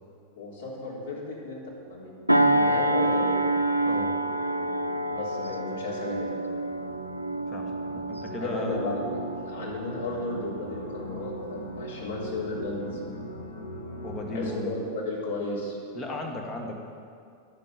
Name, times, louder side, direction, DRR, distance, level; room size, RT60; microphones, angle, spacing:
voice 1, 0.4-1.6 1.9-2.1 2.4-3.4 5.1-6.3 8.4-9.2 9.5-13.0 14.3-15.8, left 2 dB, 60° left, -5 dB, 3.5 m, -34 dB
sound 1, 1.8-14.5, equal, 75° left, 1.3 m, -41 dB
sound 2, 2.3-11.1 11.6-11.8, right 1 dB, 85° right, 0.5 m, -28 dB
voice 2, 3.8-4.2 7.5-9.0 14.0-14.8 15.9-16.8, left 1 dB, 20° left, 1 dB, 1.7 m, -35 dB
11.0 x 6.9 x 8.2 m, 2.3 s
figure-of-eight pair, 90°, 0 cm